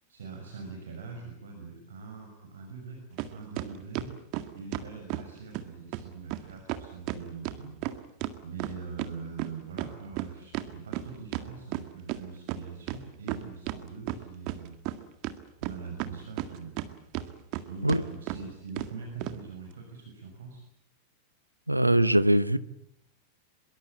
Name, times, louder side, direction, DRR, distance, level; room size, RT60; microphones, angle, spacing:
voice 1, 0.1-4.2 4.5-7.8 8.4-14.8 15.6-16.8 17.7-20.6, right 5 dB, 65° right, 2 dB, 5.9 m, -43 dB
sound 1, 3.2-3.3 3.6-5.3 5.5-5.6 5.9-6.0 6.3-6.4 6.7-9.1 9.4-12.2 12.5-12.6 12.9-13.8 14.1-15.0 15.2-16.9 17.1-17.6 17.9-18.0 18.3-18.4 18.8-18.9 19.2-19.4, right 15 dB, 45° right, 1.9 m, -33 dB
voice 2, 21.7-22.6, right 1 dB, 85° right, 15 dB, 1.0 m, -22 dB
24.5 x 22.5 x 8.8 m, 0.76 s
figure-of-eight pair, 90°, 0 cm